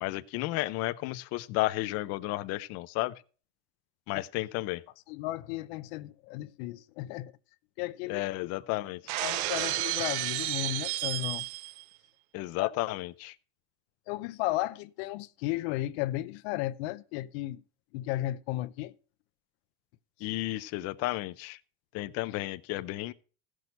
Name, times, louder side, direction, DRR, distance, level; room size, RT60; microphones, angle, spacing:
voice 1, 0.0-3.1 4.1-4.8 8.1-9.0 12.3-13.3 20.2-21.6 21.9-23.1, left 18 dB, 55° left, 0.6 m, -32 dB
voice 2, 5.1-7.3 7.8-8.2 9.2-11.5 12.6-12.7 14.1-17.6 17.9-18.9, left 16 dB, 90° left, 0.7 m, -34 dB
Shatter, 9.1-11.8, right 17 dB, 80° right, 0.7 m, -32 dB
15.5 x 6.2 x 5.4 m
cardioid pair, 165°, 30 cm